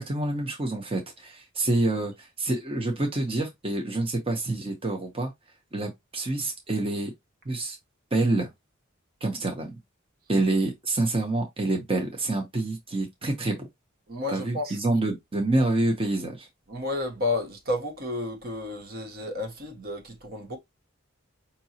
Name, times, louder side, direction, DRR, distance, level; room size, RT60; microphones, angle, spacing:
voice 1, 0.0-5.3 5.7-7.1 7.5-7.8 8.1-8.5 9.2-9.7 10.3-13.7 14.3-16.5, right 2 dB, 25° right, 0.9 m, -27 dB
voice 2, 14.1-14.8 16.7-20.6, left 2 dB, 50° right, 1.1 m, -31 dB
5.3 x 2.8 x 2.8 m
head